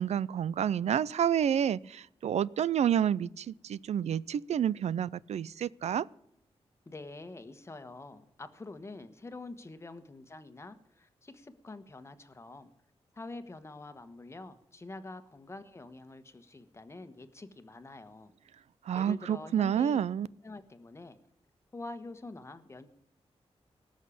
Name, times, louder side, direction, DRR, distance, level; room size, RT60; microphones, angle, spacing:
voice 1, 0.0-6.1 18.9-20.3, right 9 dB, 85° right, 21 dB, 0.5 m, -29 dB
voice 2, 6.9-12.7 13.1-18.3 18.9-20.0 20.4-21.2 21.7-22.9, left 2 dB, 25° left, 9 dB, 1.3 m, -46 dB
19.5 x 6.5 x 8.5 m, 0.75 s
wide cardioid pair, 135°, 11 cm